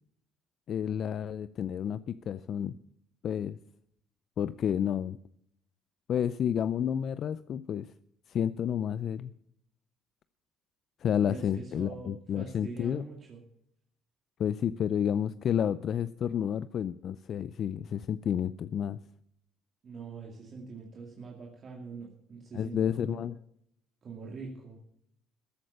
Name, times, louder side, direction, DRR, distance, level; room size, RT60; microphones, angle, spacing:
voice 1, 0.7-2.7 3.2-3.6 4.4-5.2 6.1-7.9 8.3-9.3 11.0-13.0 14.4-19.0 22.5-23.3, left 9 dB, 55° left, 15 dB, 0.4 m, -30 dB
voice 2, 11.3-13.4 19.8-23.2 24.0-24.8, right 4 dB, 40° right, -1 dB, 2.3 m, -44 dB
14.0 x 8.7 x 6.6 m, 0.72 s
cardioid pair, 100°, 0 cm